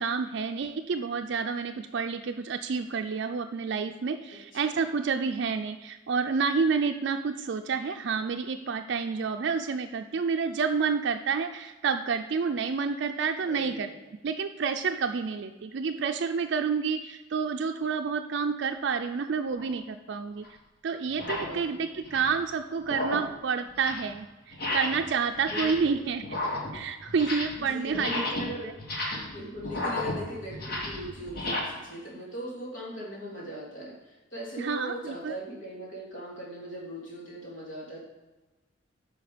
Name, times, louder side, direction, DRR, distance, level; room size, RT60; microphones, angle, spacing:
voice 1, 0.0-13.9 14.2-20.5 20.8-26.2 26.7-28.2 28.6-28.7 34.6-35.4, right 5 dB, 60° right, 6 dB, 0.4 m, -29 dB
voice 2, 13.5-13.9 21.4-21.9 25.4-25.9 27.7-28.7 29.1-38.0, right 1 dB, 70° left, -4 dB, 3.1 m, -39 dB
sound 1, 19.5-19.7 20.4-20.5 21.1-21.6 21.9-22.4 22.8-23.4 23.7-24.1 24.5-25.1 25.4-25.9 26.2-27.6 27.9-31.6, left 1 dB, 50° left, 1.7 m, -33 dB
9.3 x 5.8 x 5.0 m, 1.2 s
head